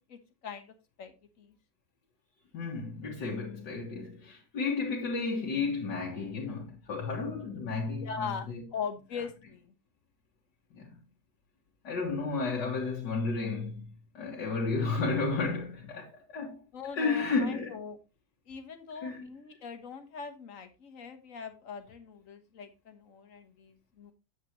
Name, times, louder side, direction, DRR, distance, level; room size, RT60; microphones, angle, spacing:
voice 1, 0.0-1.5 8.0-9.7 16.7-18.0 18.5-24.1, left 6 dB, 50° left, 1.6 m, -41 dB
voice 2, 2.5-8.6 10.7-11.0 11.8-13.9 14.1-16.6 16.9-17.8 19.0-19.3, left 4 dB, 70° left, 2.2 m, -32 dB
9.1 x 8.1 x 3.0 m
omnidirectional pair, 2.0 m